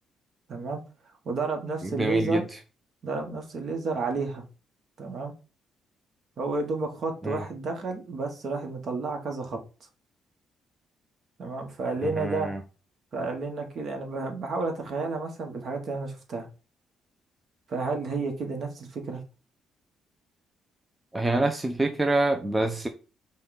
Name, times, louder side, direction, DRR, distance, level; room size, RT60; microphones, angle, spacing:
voice 1, 0.5-0.8 1.2-2.5 3.0-4.4 5.0-5.3 6.4-9.6 11.4-12.5 13.1-16.5 17.7-19.2, right 3 dB, 50° right, 1.2 m, -31 dB
voice 2, 2.0-2.4 7.2-7.4 12.0-12.6 21.1-22.9, right 2 dB, 10° right, 0.5 m, -26 dB
5.3 x 2.3 x 3.9 m
cardioid pair, 105°, 0 cm